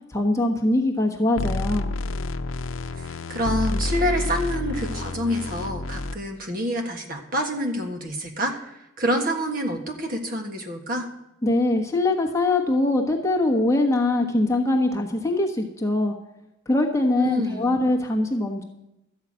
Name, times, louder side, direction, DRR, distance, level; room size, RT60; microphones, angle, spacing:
voice 1, 0.1-1.9 11.4-16.1 16.7-18.6, left 2 dB, 15° left, 1 dB, 1.1 m, -22 dB
sound 1, 1.4-6.1, left 2 dB, 80° left, 0.7 m, -29 dB
voice 2, 2.9-11.1 17.2-17.7, equal, 45° right, 3 dB, 1.5 m, -27 dB
13.0 x 5.7 x 8.7 m, 0.87 s
head